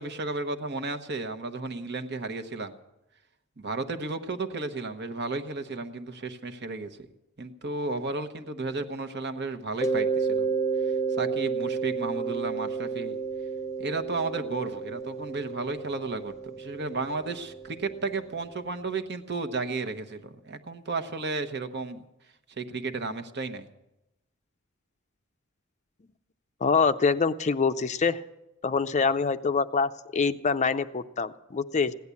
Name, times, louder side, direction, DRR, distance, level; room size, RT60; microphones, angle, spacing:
voice 1, 0.0-2.7 3.6-6.9 7.4-10.5 10.8-13.2 13.8-22.0 22.6-23.7, right 3 dB, 55° right, 7 dB, 1.1 m, -33 dB
Mallet percussion, 9.8-18.4, right 5 dB, 15° left, 0.8 m, -31 dB
voice 2, 26.6-28.2 28.6-31.9, left 5 dB, 35° left, 11 dB, 0.5 m, -25 dB
16.5 x 10.5 x 8.4 m, 0.93 s
head